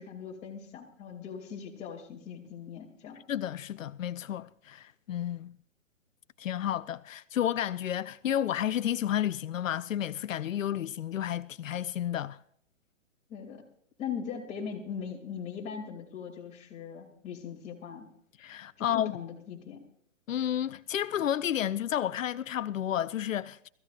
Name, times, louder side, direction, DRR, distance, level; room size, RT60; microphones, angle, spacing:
voice 1, 0.0-3.2 13.3-13.6 14.0-18.0 18.8-19.8, left 7 dB, 20° left, 2.8 m, -40 dB
voice 2, 3.3-5.6 6.4-12.4 18.4-19.1 20.3-23.7, left 10 dB, 85° left, 0.6 m, -31 dB
23.5 x 14.5 x 2.5 m
hypercardioid pair, 145°, 38 cm